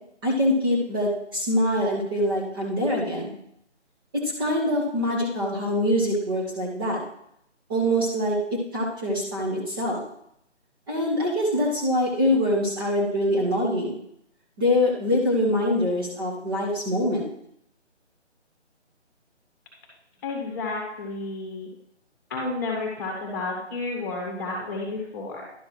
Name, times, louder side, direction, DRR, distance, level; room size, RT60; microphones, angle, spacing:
voice 1, 0.2-3.4 4.2-7.0 7.7-10.0 10.9-14.0 14.6-17.3, left 1 dB, 20° right, -5 dB, 1.4 m, -24 dB
voice 2, 20.2-21.7 22.3-25.5, left 3 dB, 15° left, -1 dB, 1.6 m, -31 dB
11.5 x 6.7 x 3.2 m, 0.73 s
figure-of-eight pair, 155°, 36 cm